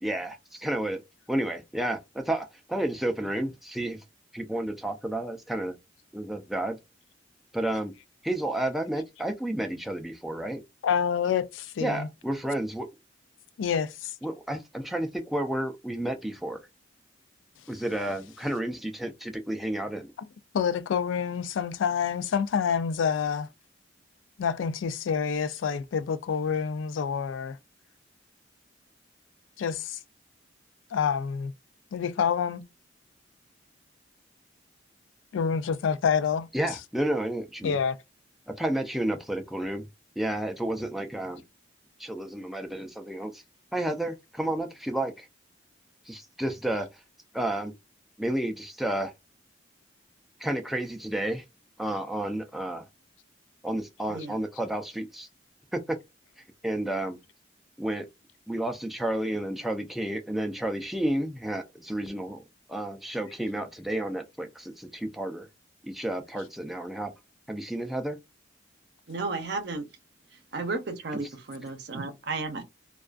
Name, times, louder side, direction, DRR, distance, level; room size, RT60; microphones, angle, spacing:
voice 1, 0.0-1.0 1.3-4.0 4.3-5.8 6.1-6.8 7.5-7.9 8.2-10.6 11.8-12.9 14.2-16.6 17.7-20.1 36.5-37.8 38.5-39.9 40.2-41.4 42.0-43.4 43.7-45.3 46.1-47.0 47.3-47.7 48.2-49.1 50.4-51.4 51.8-52.9 53.6-55.3 55.7-56.0 56.4-57.2 57.8-58.1 58.5-62.4 62.7-65.5 65.8-67.1 67.5-68.2, right 1 dB, ahead, 0.3 m, -31 dB
voice 2, 10.8-12.1 13.6-14.1 20.5-23.5 24.4-27.6 29.6-30.0 30.9-31.5 31.9-32.6 35.3-36.5 37.6-38.0, left 7 dB, 85° left, 0.3 m, -27 dB
voice 3, 69.1-69.9 70.5-72.6, right 3 dB, 60° right, 0.6 m, -33 dB
2.3 x 2.3 x 2.3 m
head